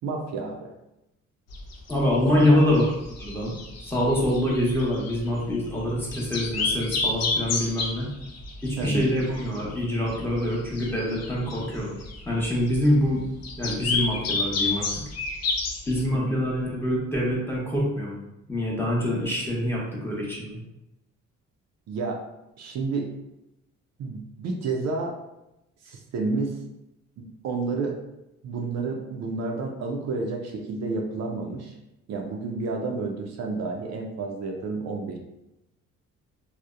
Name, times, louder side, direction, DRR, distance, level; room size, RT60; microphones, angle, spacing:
voice 1, 0.0-0.7 2.2-2.6 8.8-9.1 16.1-16.4 21.9-22.2 22.6-23.1 24.0-25.1 25.8-26.5 27.2-27.9 28.4-31.7 32.1-35.2, right 3 dB, 60° right, 2 dB, 0.4 m, -30 dB
sound 1, 1.5-16.0, left 3 dB, 55° left, 0.5 m, -31 dB
voice 2, 1.9-2.9 3.2-3.5 3.8-8.1 8.6-12.0 12.2-13.2 13.6-15.0 15.9-18.2 18.5-20.6, left 1 dB, 5° left, -5 dB, 0.8 m, -25 dB
2.7 x 2.0 x 2.3 m, 0.90 s
cardioid pair, 90°, 30 cm